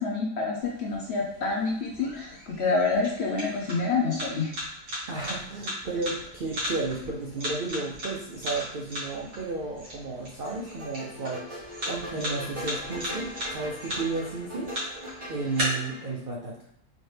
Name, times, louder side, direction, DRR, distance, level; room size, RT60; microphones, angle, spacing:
voice 1, 0.0-4.5, left 4 dB, 55° left, -2 dB, 0.8 m, -27 dB
sound 1, 0.6-15.6, equal, 55° right, 1.8 m, -38 dB
voice 2, 5.1-14.9 15.3-16.7, right 3 dB, 70° right, -2 dB, 0.5 m, -33 dB
sound 2, 10.4-16.1, equal, 25° right, 0.7 m, -41 dB
4.2 x 2.9 x 3.2 m, 0.70 s
omnidirectional pair, 1.7 m